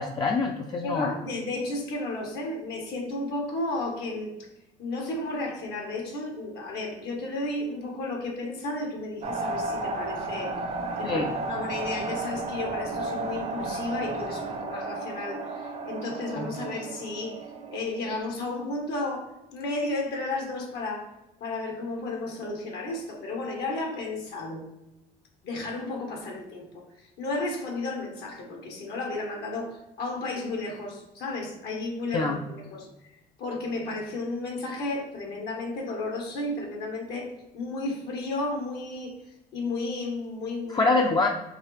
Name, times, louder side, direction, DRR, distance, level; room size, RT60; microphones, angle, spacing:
voice 1, 0.0-1.1 11.0-11.3 16.4-16.5 32.1-32.4 40.7-41.3, left 3 dB, 25° left, 1 dB, 0.4 m, -25 dB
voice 2, 0.8-4.5 4.8-10.5 11.0-17.4 17.7-21.1 21.4-24.6 25.4-40.9, left 2 dB, 75° left, 1 dB, 1.1 m, -33 dB
sound 1, 9.2-18.2, right 3 dB, 40° right, 0.6 m, -33 dB
4.6 x 2.7 x 3.1 m, 0.96 s
cardioid pair, 110°, 17 cm